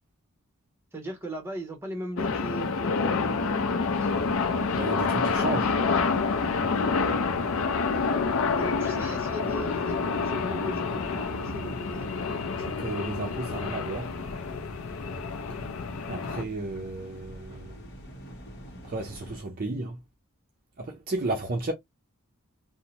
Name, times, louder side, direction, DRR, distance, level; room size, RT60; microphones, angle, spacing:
voice 1, 0.9-4.1 7.7-8.3 8.6-12.3, equal, 10° right, 0.8 m, -38 dB
sound 1, 2.2-16.4, left 4 dB, 65° left, 0.4 m, -28 dB
sound 2, 3.9-19.4, equal, 50° left, 0.9 m, -46 dB
voice 2, 4.7-5.8 12.6-14.1 16.1-17.8 18.8-20.0 20.8-21.7, right 2 dB, 40° right, 0.4 m, -33 dB
2.7 x 2.0 x 2.8 m
head